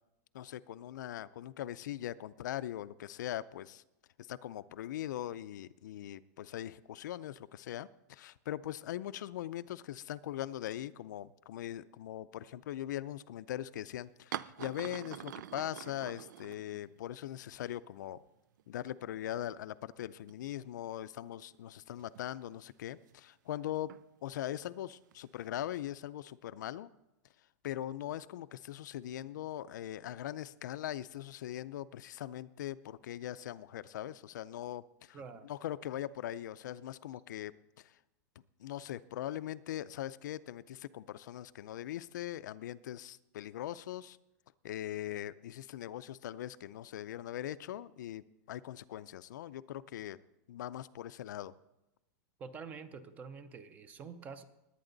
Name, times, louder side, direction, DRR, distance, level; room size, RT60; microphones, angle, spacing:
voice 1, 0.3-3.8 4.2-18.2 18.7-23.9 24.2-26.9 27.6-37.5 37.8-38.0 38.6-44.2 44.6-50.2 50.5-51.5, left 12 dB, 80° left, 14 dB, 0.5 m, -41 dB
sound 1, 14.3-17.2 17.4-17.5 18.6-18.7 18.9-19.8 20.3-20.4 21.9-23.1 23.8-24.1 25.1-25.8, right 11 dB, 85° right, 0.4 m, -46 dB
voice 2, 35.1-35.5 52.4-54.4, right 5 dB, 15° right, 13 dB, 0.6 m, -47 dB
19.5 x 9.0 x 3.9 m, 0.92 s
supercardioid pair, 170°, 10 cm